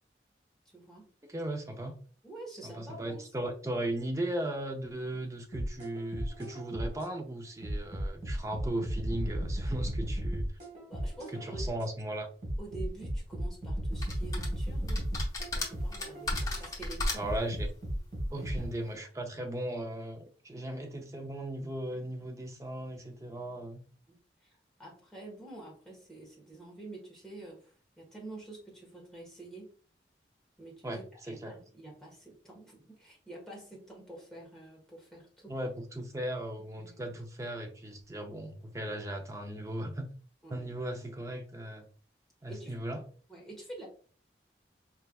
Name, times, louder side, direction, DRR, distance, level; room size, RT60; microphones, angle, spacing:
voice 1, 0.7-1.1 2.2-3.2 10.9-11.7 12.6-15.1 15.5-17.3 18.3-18.7 20.6-20.7 24.1-29.7 30.6-35.5 36.8-37.2 40.4-40.7 42.5-42.8 43.3-43.9, right 2 dB, ahead, -3 dB, 1.3 m, -48 dB
voice 2, 1.3-1.9 2.6-10.5 11.3-12.3 17.2-17.7 18.3-23.8 30.8-31.5 35.5-40.1 40.5-41.9 42.4-43.0, right 1 dB, 15° right, 4 dB, 0.5 m, -37 dB
sound 1, 5.5-7.1 7.6-11.9 12.4-16.7 17.2-18.7, equal, 40° right, 1.7 m, -35 dB
sound 2, 14.0-14.5 14.9-17.4, left 2 dB, 20° left, 0.8 m, -34 dB
4.4 x 3.4 x 2.3 m, 0.42 s
head